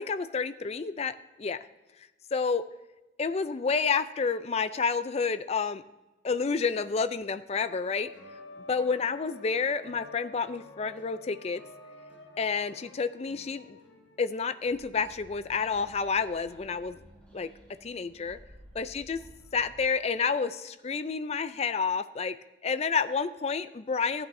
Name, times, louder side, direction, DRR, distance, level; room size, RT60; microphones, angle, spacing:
voice 1, 0.0-1.6 2.3-2.6 3.2-5.8 6.2-8.1 8.7-11.6 12.4-13.8 14.2-17.0 17.3-17.5 17.8-18.4 18.7-19.2 19.5-22.4 22.6-24.3, left 5 dB, 35° left, 13 dB, 0.4 m, -29 dB
sound 1, 7.6-15.2, left 2 dB, 75° left, 1.3 m, -50 dB
sound 2, 14.6-19.8, equal, 5° left, 2.4 m, -54 dB
13.5 x 8.8 x 2.6 m, 1.1 s
head